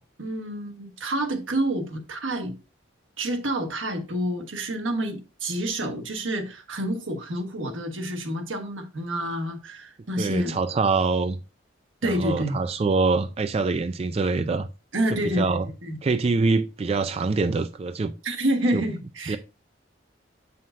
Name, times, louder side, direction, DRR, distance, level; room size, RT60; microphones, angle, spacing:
voice 1, 0.2-2.5 3.2-10.6 12.0-12.6 14.9-16.0 18.2-19.4, right 1 dB, 90° right, 1.4 m, -28 dB
voice 2, 10.2-11.4 12.0-14.7 15.2-15.7 16.0-18.1 18.7-18.8 19.3-19.4, right 3 dB, 30° right, 0.3 m, -24 dB
7.7 x 5.7 x 2.5 m
head